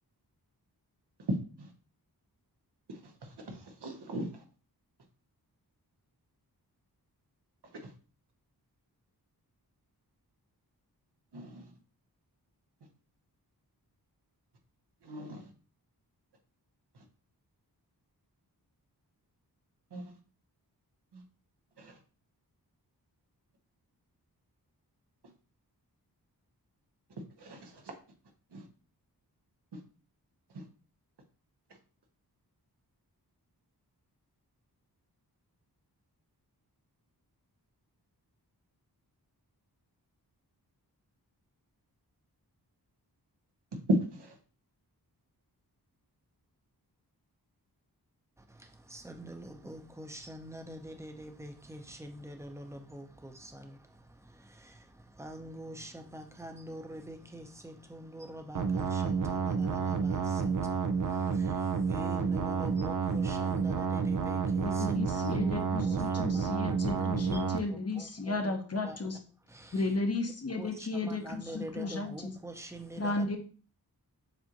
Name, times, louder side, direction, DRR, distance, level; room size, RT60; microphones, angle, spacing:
voice 1, 2.9-4.4 7.7-7.9 11.3-11.7 15.0-15.5 19.9-20.0 21.1-21.2 21.8-22.0 27.4-27.9 28.5-28.6 29.7-29.8 30.5-30.6 43.9-44.4, right 1 dB, 85° right, 1.1 m, -36 dB
voice 2, 48.4-68.5 68.8-69.0 69.5-70.0 70.6-73.3, right 1 dB, 5° right, 0.7 m, -46 dB
sound 1, 58.5-67.6, right 5 dB, 55° right, 0.5 m, -30 dB
voice 3, 64.6-69.2 69.7-72.3 73.0-73.4, left 2 dB, 40° left, 0.8 m, -34 dB
7.0 x 2.5 x 2.9 m
wide cardioid pair, 70°, 39 cm